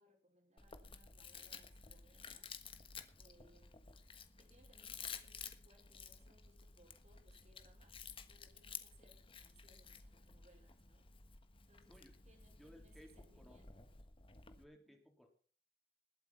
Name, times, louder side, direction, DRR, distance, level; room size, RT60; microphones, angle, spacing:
voice 1, 0.0-2.5 3.2-3.8 4.4-7.9 8.3-11.1 11.7-13.9 14.8-15.0, right 1 dB, 40° right, 3 dB, 4.6 m, -70 dB
Chewing mastication, 0.6-14.6, left 6 dB, 30° left, 1.4 m, -53 dB
voice 2, 12.6-13.6 14.5-15.3, equal, ahead, 1 dB, 3.8 m, -61 dB
20.5 x 8.2 x 5.8 m, 0.42 s
head